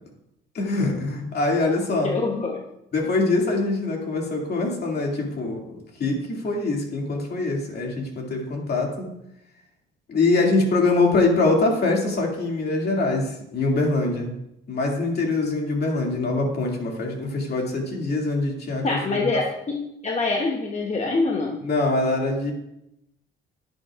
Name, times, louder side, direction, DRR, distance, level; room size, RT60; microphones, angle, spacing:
voice 1, 0.5-2.1 2.9-9.1 10.1-14.3 14.7-19.4 21.6-22.5, left 3 dB, 55° left, 0 dB, 2.3 m, -24 dB
voice 2, 2.0-2.6 18.8-21.6, left 3 dB, 35° left, 1 dB, 1.0 m, -25 dB
10.5 x 10.0 x 2.4 m, 0.83 s
cardioid pair, 90°, 20 cm